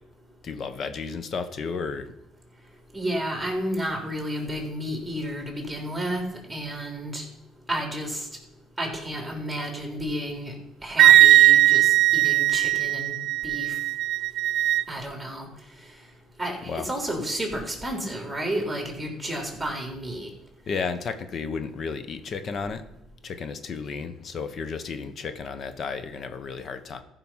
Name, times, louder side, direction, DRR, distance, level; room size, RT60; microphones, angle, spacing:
voice 1, 0.4-2.1 16.7-16.9 20.7-22.8 23.2-27.0, left 5 dB, 45° left, 10 dB, 1.0 m, -33 dB
voice 2, 2.9-7.3 7.7-8.3 8.8-10.5 10.8-13.2 13.4-13.8 14.9-15.5 16.4-20.3, right 1 dB, 5° right, 1 dB, 3.7 m, -31 dB
Wind instrument woodwind instrument, 11.0-14.8, right 14 dB, 70° right, 0.3 m, -18 dB
14.5 x 5.7 x 5.6 m, 0.86 s
cardioid pair, 95°, 0 cm